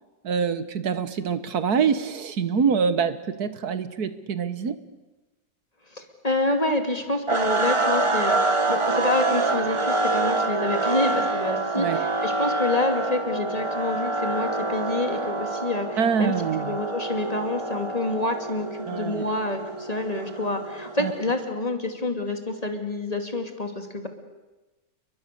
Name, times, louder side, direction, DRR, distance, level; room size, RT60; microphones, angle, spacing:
voice 1, 0.2-4.8 11.8-12.0 16.0-16.8 18.9-19.3 21.0-21.1, right 6 dB, 90° right, 12 dB, 1.8 m, -25 dB
voice 2, 5.9-16.3 16.6-24.1, left 2 dB, 25° left, 5 dB, 2.7 m, -28 dB
sound 1, 7.3-21.4, right 2 dB, 20° right, 1.4 m, -26 dB
30.0 x 22.5 x 6.8 m, 1.1 s
omnidirectional pair, 1.6 m